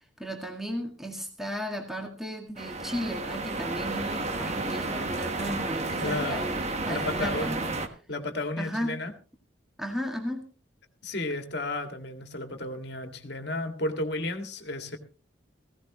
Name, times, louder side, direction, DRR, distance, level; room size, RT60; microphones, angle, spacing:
voice 1, 0.2-7.8 8.6-8.9 9.8-10.5, equal, ahead, 2 dB, 1.9 m, -35 dB
sound 1, 2.6-7.9, right 2 dB, 35° right, 1.3 m, -32 dB
voice 2, 6.0-6.5 6.9-7.5 8.1-9.1 11.0-15.0, left 2 dB, 60° left, 6 dB, 2.0 m, -33 dB
16.5 x 16.0 x 3.0 m, 0.35 s
head